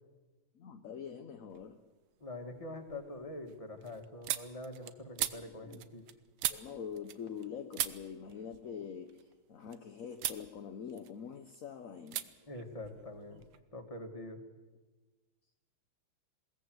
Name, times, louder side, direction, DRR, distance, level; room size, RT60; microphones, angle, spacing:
voice 1, 0.5-1.8 5.3-5.9 6.5-12.3, left 7 dB, 55° left, 0.9 m, -45 dB
sound 1, 1.5-2.0 2.4-7.5 7.7-9.8 10.2-10.5 10.8-11.6 12.1-12.3 12.5-13.6, right 12 dB, 75° right, 1.7 m, -40 dB
voice 2, 2.2-6.0 12.5-13.4 13.7-14.4, left 2 dB, 15° left, 1.9 m, -44 dB
21.5 x 17.5 x 7.8 m
omnidirectional pair, 2.4 m